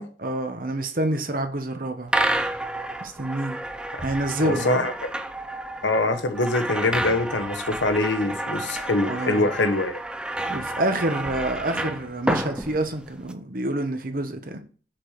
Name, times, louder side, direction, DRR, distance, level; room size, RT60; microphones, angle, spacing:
voice 1, 0.2-2.1 3.0-3.6 4.0-4.9 9.1-9.5 10.5-14.6, right 1 dB, 50° right, 1.1 m, -27 dB
sound 1, 2.1-13.3, right 1 dB, 5° right, 0.4 m, -30 dB
voice 2, 4.4-4.9 5.8-10.0, left 2 dB, 85° left, 1.1 m, -24 dB
6.0 x 5.0 x 6.5 m
head